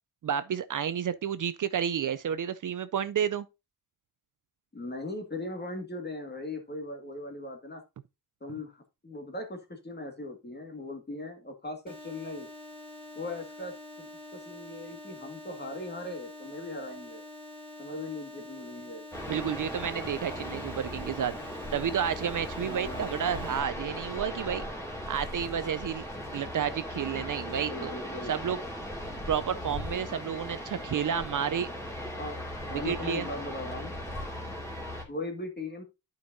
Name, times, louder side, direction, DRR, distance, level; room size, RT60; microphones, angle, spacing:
voice 1, 0.2-3.5 19.3-24.6 25.1-26.0 26.3-27.9 28.3-28.6 29.3-31.7 32.7-33.3, right 8 dB, 55° right, 0.5 m, -31 dB
voice 2, 4.7-7.8 8.4-12.5 13.2-17.2 17.8-19.1 22.6-23.1 27.5-28.4 32.1-32.4 32.7-33.9 35.1-35.8, left 2 dB, 25° left, 1.9 m, -39 dB
sound 1, 11.9-23.6, left 1 dB, 15° right, 2.1 m, -46 dB
sound 2, 19.1-35.0, equal, 5° left, 2.3 m, -38 dB
11.5 x 5.3 x 2.6 m
cardioid pair, 85°, 38 cm